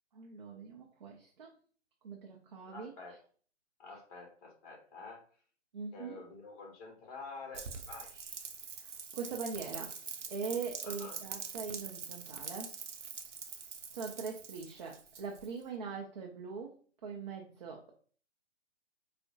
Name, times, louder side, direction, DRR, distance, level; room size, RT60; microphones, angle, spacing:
voice 1, 0.1-1.5 2.0-2.9 5.7-6.2 8.7-9.9 10.3-12.7 13.9-16.7 17.0-17.9, right 5 dB, 40° right, 0 dB, 0.5 m, -42 dB
voice 2, 2.7-3.2 3.8-5.2 5.9-8.4 10.8-11.2, left 4 dB, 30° left, 1 dB, 1.0 m, -49 dB
Rain, 7.5-15.6, right 5 dB, 85° right, 0.6 m, -44 dB
4.5 x 2.1 x 2.6 m, 0.43 s
figure-of-eight pair, 140°, 35 cm